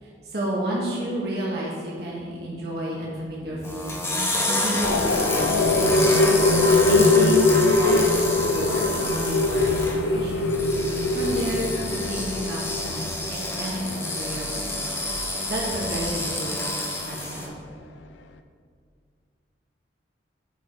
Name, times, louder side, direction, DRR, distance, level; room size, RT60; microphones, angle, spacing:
voice 1, 0.0-4.0 4.4-5.5 5.8-6.1 6.9-10.5 11.1-11.8 12.1-13.0 13.3-14.8 15.4-16.7 17.0-17.5, right 1 dB, 60° right, -5 dB, 1.4 m, -31 dB
sound 1, 3.6-17.5, left 1 dB, 15° left, 0.8 m, -29 dB
sound 2, 4.8-16.5, left 3 dB, 80° left, 0.5 m, -23 dB
9.1 x 4.7 x 4.8 m, 2.1 s
head